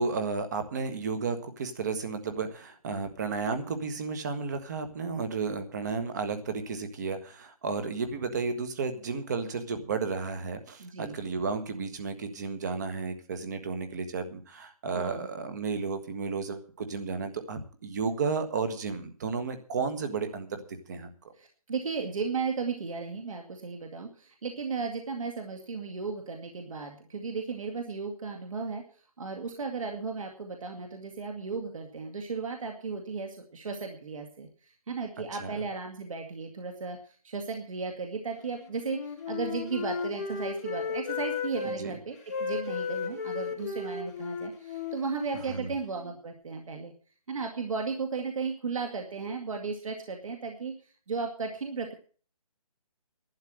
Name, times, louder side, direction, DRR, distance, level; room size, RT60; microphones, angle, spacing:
voice 1, 0.0-20.6 20.9-21.3 35.4-35.6 41.6-41.9 45.5-45.7, right 4 dB, 30° right, 9 dB, 1.5 m, -33 dB
voice 2, 10.8-11.2 14.9-15.3 21.4-46.9 47.3-50.8 51.1-51.9, right 4 dB, 60° right, 3 dB, 2.2 m, -35 dB
Wind instrument woodwind instrument, 38.8-41.8 42.3-46.1, left 5 dB, 25° left, 2.2 m, -35 dB
12.0 x 9.5 x 7.7 m, 0.42 s
hypercardioid pair, 170°, 19 cm